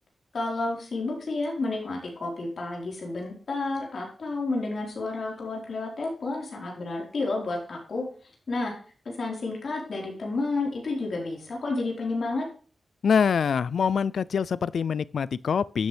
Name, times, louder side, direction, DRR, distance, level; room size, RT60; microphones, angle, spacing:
voice 1, 0.3-8.1 8.5-8.7 9.0-12.5, left 3 dB, 65° left, 4.2 m, -30 dB
voice 2, 13.0-15.9, left 6 dB, 80° left, 0.3 m, -24 dB
11.5 x 8.0 x 3.4 m
cardioid pair, 75°, 0 cm